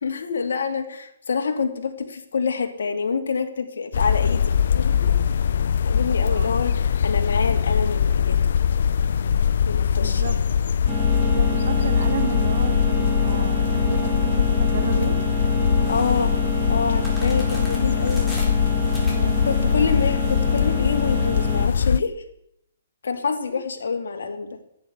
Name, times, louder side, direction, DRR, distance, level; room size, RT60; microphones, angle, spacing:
voice 1, 0.0-5.2 5.8-8.5 9.7-10.2 15.9-16.3 16.7-18.3 19.5-22.2 23.0-24.6, left 5 dB, 75° left, 5 dB, 2.6 m, -27 dB
sound 1, 3.9-22.0, left 7 dB, 60° left, 0.5 m, -21 dB
voice 2, 9.9-10.4 11.2-15.2 19.1-20.1, right 7 dB, 60° right, 6 dB, 1.5 m, -33 dB
sound 2, 10.9-21.7, equal, 15° right, 2.1 m, -29 dB
sound 3, 15.8-21.9, left 1 dB, 5° left, 3.9 m, -42 dB
11.0 x 10.0 x 9.7 m, 0.76 s
hypercardioid pair, 160°, 0 cm